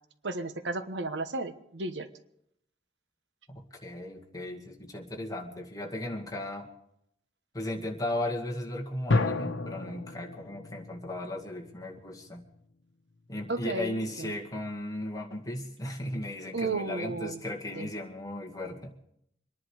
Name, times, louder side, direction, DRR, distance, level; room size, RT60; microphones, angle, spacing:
voice 1, 0.2-2.1 13.5-14.3 16.5-17.4 17.7-17.9, right 3 dB, 70° right, 10 dB, 1.1 m, -33 dB
voice 2, 3.5-6.7 7.5-12.4 13.3-18.9, left 1 dB, 20° left, 0 dB, 2.1 m, -36 dB
sound 1, 9.1-12.6, left 3 dB, 80° left, 1.1 m, -32 dB
25.5 x 11.0 x 4.8 m, 0.74 s
head